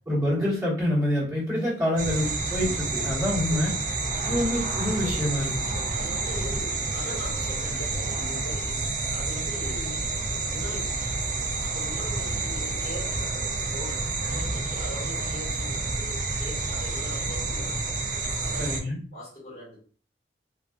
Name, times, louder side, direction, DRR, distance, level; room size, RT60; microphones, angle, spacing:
voice 1, 0.1-3.7 4.2-5.5 18.6-19.0, left 1 dB, 15° right, -10 dB, 1.4 m, -26 dB
sound 1, 1.5-1.9 2.6-2.8 3.5-3.6 4.3-4.4 5.0-5.1 5.7-5.8 6.4-6.5 7.1-7.2 7.8-7.9 8.4-8.5, left 1 dB, 70° left, 0.7 m, -38 dB
sound 2, 2.0-18.8, right 3 dB, 45° right, 0.4 m, -29 dB
voice 2, 3.8-4.3 5.3-5.6 5.9-11.0 11.3-13.2 13.6-18.0 18.4-18.8 19.1-19.8, left 1 dB, 40° left, -7 dB, 1.3 m, -42 dB
2.5 x 2.4 x 2.2 m, 0.43 s
head